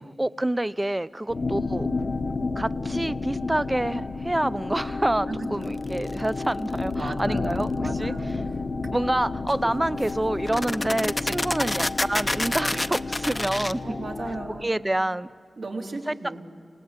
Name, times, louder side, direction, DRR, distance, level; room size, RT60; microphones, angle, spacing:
voice 1, 0.2-1.9 2.6-7.7 8.0-8.1 8.9-13.8 14.5-15.3 16.1-16.2, right 1 dB, 20° right, 16 dB, 0.6 m, -27 dB
sound 1, 1.3-14.6, left 3 dB, 65° left, 1.0 m, -31 dB
voice 2, 5.3-5.7 6.9-8.6 9.6-9.7 13.8-14.7 15.6-16.4, right 2 dB, 80° right, -1 dB, 3.4 m, -36 dB
sound 2, 6.0-6.3 9.5-9.6 10.0-10.1 10.4-13.7, left 1 dB, 25° left, 0.7 m, -28 dB
27.0 x 18.0 x 8.9 m, 2.1 s
cardioid pair, 50°, 0 cm